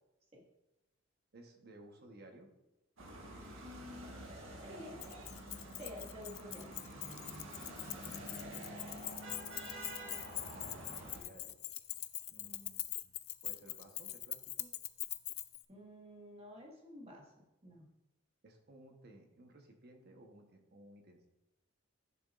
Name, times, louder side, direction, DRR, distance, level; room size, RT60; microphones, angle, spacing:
voice 1, 1.3-2.5 10.6-11.6 12.3-13.1 13.4-14.7 18.4-21.3, right 1 dB, 50° right, 3 dB, 1.1 m, -58 dB
sound 1, 3.0-11.2, right 1 dB, 70° right, 1.4 m, -48 dB
voice 2, 3.6-5.0 5.8-6.7 15.7-17.9, left 1 dB, 30° right, -2 dB, 1.7 m, -51 dB
Keys jangling, 5.0-15.6, left 17 dB, 80° left, 0.4 m, -43 dB
10.5 x 7.0 x 2.5 m, 0.94 s
head